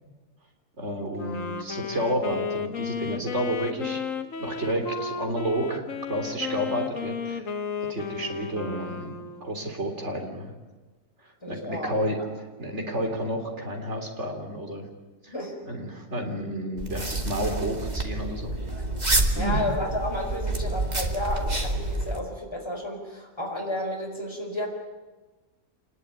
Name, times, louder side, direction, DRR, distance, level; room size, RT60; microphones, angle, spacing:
voice 1, 0.8-4.0 4.4-5.8 6.1-7.5 7.9-10.5 11.2-12.2 12.6-14.9 15.2-15.3 15.7-18.6 19.3-19.7, right 1 dB, 50° right, 4 dB, 4.1 m, -31 dB
Wind instrument woodwind instrument, 1.1-9.8, left 6 dB, 65° left, 1.8 m, -34 dB
voice 2, 11.4-12.2 15.3-15.5 19.3-24.7, left 1 dB, 20° left, 0 dB, 5.1 m, -32 dB
sound 1, 16.8-22.2, right 2 dB, 30° right, 2.4 m, -28 dB
27.0 x 20.5 x 10.0 m, 1.3 s
omnidirectional pair, 1.5 m